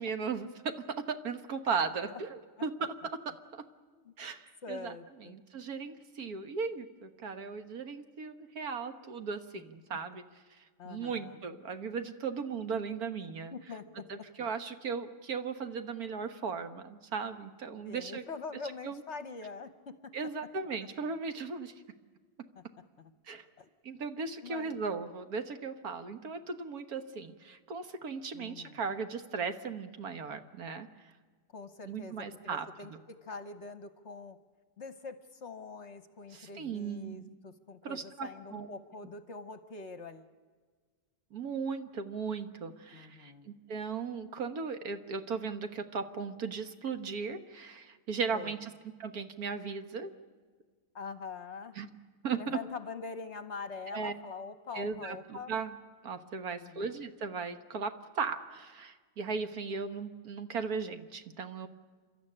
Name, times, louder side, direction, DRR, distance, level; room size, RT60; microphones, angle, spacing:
voice 1, 0.0-3.7 4.2-4.9 5.2-13.5 14.1-18.2 18.8-19.0 20.1-21.7 22.4-22.5 23.2-23.5 23.8-31.1 31.8-32.7 36.3-37.3 37.8-38.7 41.3-48.7 49.0-50.1 51.7-51.9 52.2-52.6 53.9-54.1 54.7-55.8 56.0-61.7, right 5 dB, 65° right, 9 dB, 1.7 m, -37 dB
voice 2, 4.6-5.4 9.9-10.0 10.8-11.4 13.5-14.1 14.4-14.5 17.8-20.1 22.6-22.7 23.0-23.1 23.6-23.7 24.4-24.8 28.3-28.9 31.5-34.4 34.8-40.3 42.9-43.5 48.3-48.6 50.9-51.8 52.4-55.6 56.6-57.0, left 4 dB, 45° left, 10 dB, 1.2 m, -44 dB
29.5 x 13.0 x 9.9 m, 1.5 s
omnidirectional pair, 1.8 m